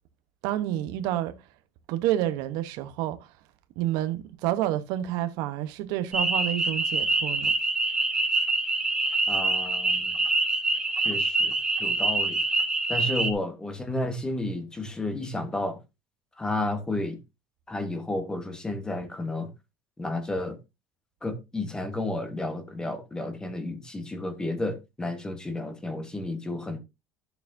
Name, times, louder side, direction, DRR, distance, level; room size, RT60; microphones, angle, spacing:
voice 1, 0.4-1.3 1.9-3.3 3.8-7.5, right 13 dB, 70° right, 0.9 m, -29 dB
sound 1, 6.1-13.3, right 2 dB, 10° right, 1.2 m, -25 dB
voice 2, 9.3-10.2 11.0-11.5 11.8-12.4 12.9-15.8 16.4-17.2 17.7-19.5 20.0-20.6 21.2-26.8, left 2 dB, 10° left, 1.1 m, -32 dB
11.0 x 7.0 x 2.6 m
cardioid pair, 145°, 7 cm